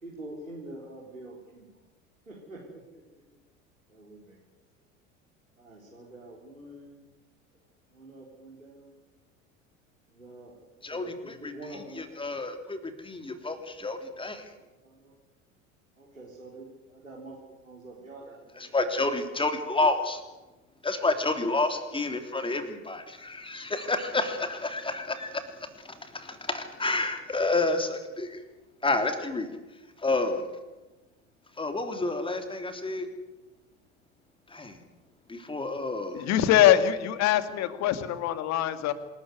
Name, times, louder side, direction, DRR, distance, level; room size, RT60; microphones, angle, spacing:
voice 1, 0.0-1.7 2.3-3.0 3.9-4.4 5.6-7.0 7.9-9.0 10.1-12.3 14.6-15.1 15.9-17.4 17.6-18.7 19.3-19.4, right 2 dB, 85° right, -4 dB, 4.4 m, -46 dB
voice 2, 10.8-11.5 12.0-12.8 13.0-14.4 18.7-20.2 20.8-28.4 28.8-29.5 30.0-30.4 31.6-33.1 34.5-34.8 35.3-36.2, left 2 dB, 15° left, 7 dB, 3.3 m, -29 dB
voice 3, 36.1-38.9, left 12 dB, 45° left, 12 dB, 2.2 m, -23 dB
26.5 x 13.5 x 9.5 m, 1.1 s
figure-of-eight pair, 75°, 39 cm